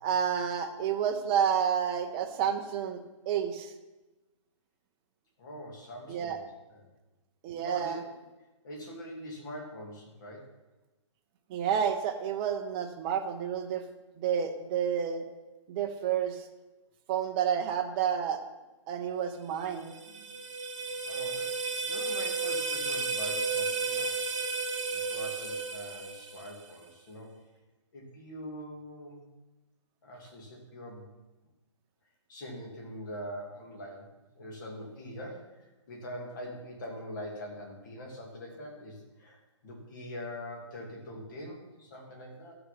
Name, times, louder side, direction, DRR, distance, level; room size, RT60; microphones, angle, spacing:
voice 1, 0.0-3.0 3.3-3.7 6.1-6.4 7.4-8.0 11.5-13.8 14.2-15.2 15.7-16.5 17.1-18.4 18.9-19.9, right 8 dB, 15° right, 5 dB, 0.6 m, -30 dB
voice 2, 5.4-6.5 6.7-6.8 7.6-8.0 8.6-10.5 21.0-24.2 24.9-27.4 27.9-29.3 30.0-31.1 32.3-42.6, equal, 40° left, 0 dB, 2.6 m, -43 dB
sound 1, 19.7-26.7, right 4 dB, 75° right, 1.8 m, -33 dB
12.5 x 6.8 x 5.9 m, 1.1 s
hypercardioid pair, 165°, 16 cm